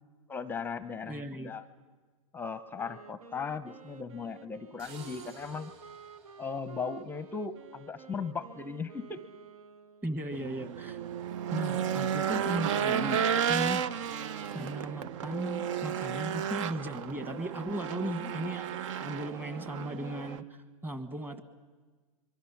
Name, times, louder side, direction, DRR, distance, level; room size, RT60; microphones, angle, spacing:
voice 1, 0.3-1.6 2.3-5.7 6.4-9.2, left 5 dB, 10° left, 13 dB, 0.7 m, -37 dB
voice 2, 1.0-1.5 10.0-11.0 11.5-13.9 14.5-18.7 19.0-21.4, right 1 dB, 10° right, 9 dB, 1.4 m, -37 dB
Wind instrument woodwind instrument, 2.7-10.4, right 6 dB, 85° right, 1.0 m, -51 dB
sound 1, 4.8-7.6, right 5 dB, 40° right, 7.5 m, -55 dB
Race car auto racing / Engine, 10.3-20.4, right 8 dB, 60° right, 0.7 m, -33 dB
24.5 x 23.0 x 5.9 m, 1.4 s
hypercardioid pair, 130°, 18 cm